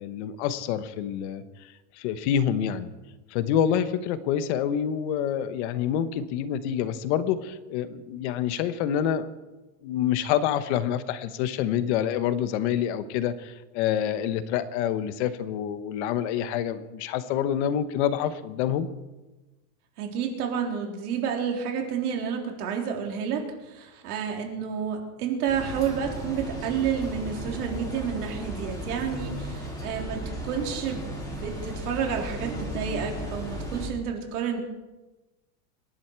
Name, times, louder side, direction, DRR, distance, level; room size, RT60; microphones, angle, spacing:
voice 1, 0.0-2.9 3.3-9.3 9.8-18.9, left 9 dB, 50° left, 12 dB, 1.1 m, -27 dB
voice 2, 20.0-34.6, right 7 dB, 90° right, 2 dB, 3.8 m, -30 dB
sound 1, 25.5-33.9, equal, 10° left, 3.1 m, -35 dB
26.5 x 11.0 x 4.6 m, 1.1 s
supercardioid pair, 175°, 44 cm